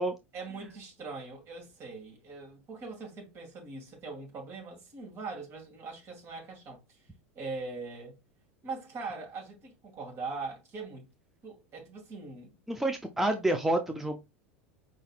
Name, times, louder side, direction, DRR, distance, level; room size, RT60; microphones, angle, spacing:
voice 1, 0.3-7.1 7.4-8.2 8.6-11.1 11.4-12.6, right 3 dB, 40° right, 2.1 m, -41 dB
voice 2, 12.7-14.2, right 1 dB, 5° right, 0.5 m, -28 dB
4.9 x 4.0 x 2.4 m
hypercardioid pair, 85°, 7 cm